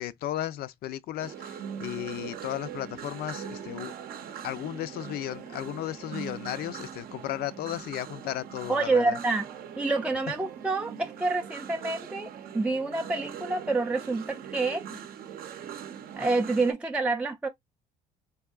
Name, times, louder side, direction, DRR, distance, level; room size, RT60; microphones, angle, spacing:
voice 1, 0.0-3.9 4.4-9.2, left 13 dB, 65° left, 0.4 m, -35 dB
sound 1, 1.2-16.7, right 8 dB, 60° right, 0.6 m, -41 dB
voice 2, 8.7-9.5 9.8-12.3 12.5-14.8 16.2-17.5, right 3 dB, 5° right, 0.3 m, -27 dB
3.5 x 2.7 x 2.3 m
cardioid pair, 110°, 17 cm